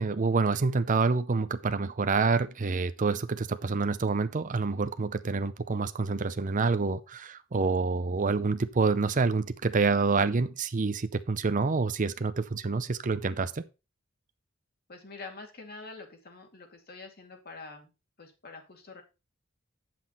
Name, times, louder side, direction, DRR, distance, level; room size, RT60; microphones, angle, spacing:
voice 1, 0.0-13.6, right 4 dB, 40° right, 0.6 m, -27 dB
voice 2, 14.9-17.9 18.2-19.0, left 3 dB, 50° left, 2.2 m, -46 dB
9.4 x 5.9 x 4.3 m
head